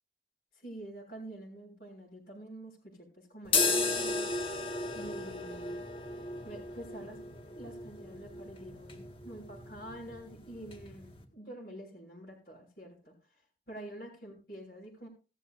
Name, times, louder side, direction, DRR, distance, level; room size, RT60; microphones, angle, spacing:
voice 1, 0.5-4.2 4.9-5.8 6.4-7.2 7.5-13.4 13.7-15.1, right 1 dB, 60° left, -4 dB, 6.5 m, -47 dB
sound 1, 3.5-11.2, left 3 dB, 30° left, 1.7 m, -35 dB
16.5 x 14.0 x 2.6 m, 0.33 s
head